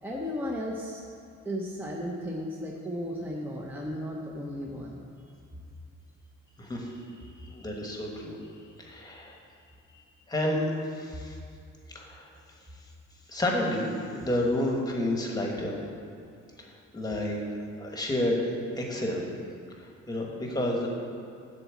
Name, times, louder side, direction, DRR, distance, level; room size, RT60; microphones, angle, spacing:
voice 1, 0.0-1.0 1.4-5.3, equal, 5° right, -2 dB, 0.6 m, -35 dB
voice 2, 6.6-7.0 7.4-8.4 8.8-9.4 10.3-11.4 11.9-12.3 13.3-15.8 16.9-17.4 17.8-18.5 18.8-19.3 20.1-20.9, left 1 dB, 15° left, -1 dB, 1.2 m, -30 dB
11.0 x 4.1 x 7.1 m, 2.5 s
wide cardioid pair, 175°, 30 cm